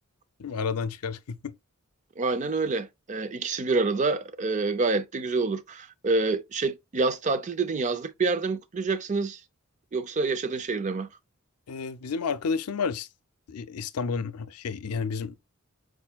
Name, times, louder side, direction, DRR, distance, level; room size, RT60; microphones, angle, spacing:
voice 1, 0.4-1.6 11.7-13.1 13.5-15.4, left 5 dB, 90° left, 0.5 m, -31 dB
voice 2, 2.2-9.4 9.9-11.1, right 3 dB, 35° right, 0.4 m, -27 dB
4.6 x 4.3 x 2.2 m
head